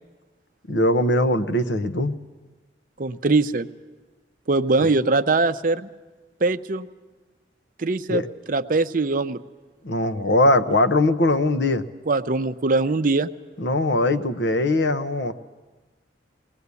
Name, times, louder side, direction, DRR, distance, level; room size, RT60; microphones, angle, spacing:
voice 1, 0.7-2.2 4.8-4.9 8.1-8.3 9.8-11.8 13.6-15.3, left 1 dB, 70° left, 10 dB, 0.9 m, -21 dB
voice 2, 3.0-3.7 4.5-5.9 6.4-6.9 7.8-8.2 8.5-9.4 12.1-13.3, right 3 dB, 45° right, 11 dB, 0.6 m, -22 dB
21.0 x 19.0 x 8.3 m, 1.3 s
head